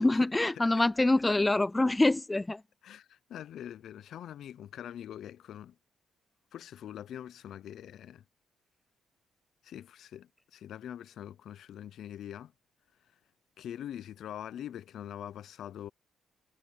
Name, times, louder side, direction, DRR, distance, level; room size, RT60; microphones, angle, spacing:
voice 1, 0.0-2.6, left 2 dB, 15° left, 0.5 m, -25 dB
voice 2, 2.8-5.8 6.5-8.2 9.6-12.5 13.6-15.9, left 10 dB, 70° left, 0.6 m, -43 dB
cardioid pair, 90°, 0 cm